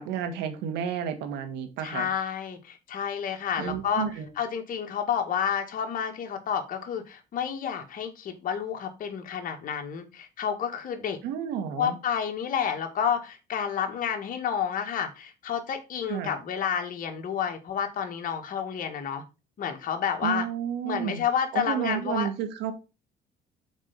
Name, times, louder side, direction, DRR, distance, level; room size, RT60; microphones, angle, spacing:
voice 1, 0.0-2.1 3.6-4.3 11.2-12.0 16.1-16.3 20.2-21.2 21.5-22.7, right 8 dB, 90° right, 1.8 m, -31 dB
voice 2, 1.8-4.1 4.4-11.2 11.8-19.2 19.6-20.4 20.8-22.3, left 8 dB, 55° left, 2.0 m, -30 dB
7.2 x 4.6 x 5.3 m
cardioid pair, 110°, 17 cm